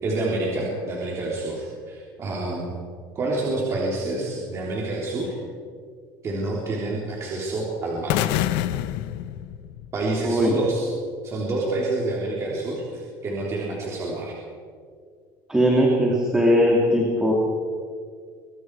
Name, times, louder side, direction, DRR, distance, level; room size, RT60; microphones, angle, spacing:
voice 1, 0.0-2.7 3.1-5.4 6.2-8.4 9.9-10.9 11.2-14.4, right 2 dB, 30° right, -3 dB, 3.7 m, -28 dB
sound 1, 8.1-10.2, left 13 dB, 75° left, 1.0 m, -26 dB
voice 2, 15.5-17.3, equal, 5° right, -2 dB, 2.9 m, -19 dB
24.5 x 24.5 x 4.9 m, 2.1 s
cardioid pair, 160°, 9 cm